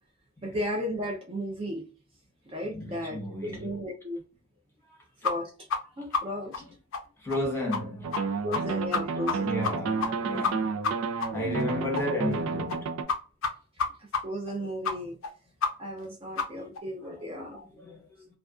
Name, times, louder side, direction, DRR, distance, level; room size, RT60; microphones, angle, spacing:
voice 1, 0.4-1.8 2.5-4.2 5.2-5.5 6.0-6.6 8.4-9.6 14.2-15.2 15.8-17.7, equal, 25° right, 0.4 m, -34 dB
voice 2, 2.6-3.8 4.9-5.0 6.3-6.7 7.2-8.5 9.4-10.8 11.1-12.9 17.0-17.4 17.7-18.3, left 1 dB, 10° left, 0.7 m, -34 dB
sound 1, 5.2-5.3 5.7-5.8 6.1-6.2 6.5-6.6 6.9-7.0 7.3-7.4 7.7-7.8 8.1-8.2 8.5-8.6 8.9-9.4 9.6-9.7 10.0-10.1 10.4-10.5 10.8-10.9 11.2-11.3 11.6-11.7 11.9-12.0 12.3-12.4 12.7-12.8 13.1-13.2 13.4-13.5 13.8-13.9 14.1-14.2 14.5-14.6 14.8-14.9 15.2-15.3 15.6-15.7 16.0-16.1 16.4-16.5 16.8-16.9, left 5 dB, 80° left, 0.5 m, -28 dB
sound 2, 8.0-13.0, right 4 dB, 90° right, 0.4 m, -31 dB
2.4 x 2.2 x 2.3 m
head